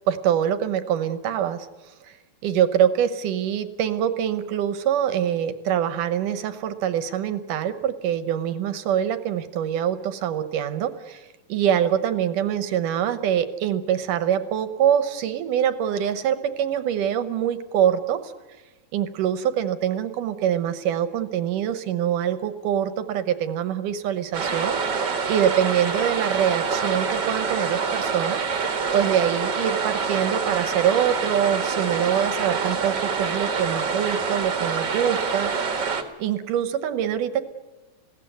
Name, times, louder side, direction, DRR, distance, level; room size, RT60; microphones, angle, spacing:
voice 1, 0.1-1.7 2.0-2.2 2.4-18.3 18.9-24.8 25.3-28.4 28.9-35.5 36.2-37.4, right 9 dB, 70° right, 12 dB, 2.4 m, -24 dB
sound 1, 24.3-36.0, right 5 dB, 40° right, 1.6 m, -26 dB
20.5 x 16.5 x 9.4 m, 1.2 s
omnidirectional pair, 4.2 m